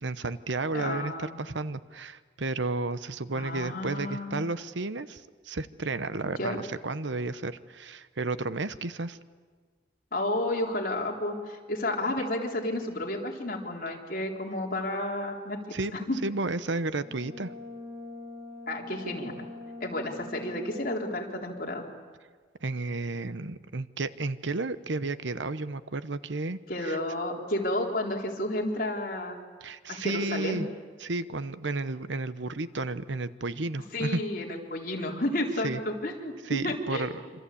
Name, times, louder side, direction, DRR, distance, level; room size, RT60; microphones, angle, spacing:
voice 1, 0.0-9.2 15.7-15.9 16.2-17.5 22.6-27.0 29.6-30.7 31.0-34.2 35.6-35.8 36.5-37.2, right 3 dB, 80° right, 14 dB, 1.0 m, -32 dB
voice 2, 0.7-1.4 3.3-4.5 6.2-6.6 10.1-15.6 15.9-16.2 18.7-19.3 19.8-21.9 26.7-29.4 29.9-30.6 33.9-37.1, left 1 dB, 50° left, 0 dB, 3.9 m, -31 dB
Brass instrument, 17.0-21.4, left 2 dB, 55° right, 5.5 m, -43 dB
26.5 x 26.5 x 8.6 m, 1.5 s
head